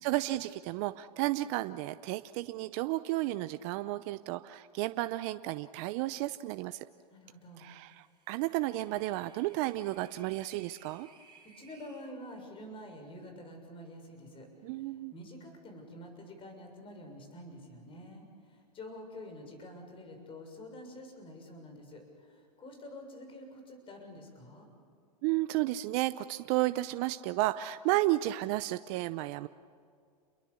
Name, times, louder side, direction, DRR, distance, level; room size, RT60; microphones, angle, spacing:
voice 1, 0.0-6.8 7.6-11.1 14.6-15.1 25.2-29.5, right 17 dB, 45° right, 12 dB, 0.7 m, -32 dB
voice 2, 7.1-7.7 11.5-24.7, left 1 dB, 25° left, 4 dB, 6.8 m, -48 dB
sound 1, 7.8-12.1, right 5 dB, 20° right, 5.9 m, -60 dB
29.0 x 22.5 x 7.1 m, 2.3 s
hypercardioid pair, 120°, 20 cm